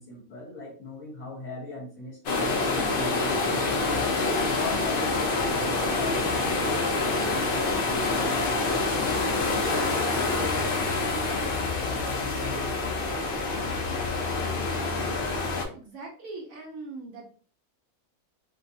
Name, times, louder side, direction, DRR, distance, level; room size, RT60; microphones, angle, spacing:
voice 1, 0.0-3.3 4.4-12.7, left 2 dB, 60° left, -2 dB, 0.9 m, -40 dB
sound 1, 2.3-15.7, left 3 dB, 75° left, 0.5 m, -26 dB
voice 2, 15.7-17.3, right 3 dB, 70° right, 0 dB, 0.9 m, -40 dB
2.6 x 2.2 x 2.6 m, 0.43 s
omnidirectional pair, 1.6 m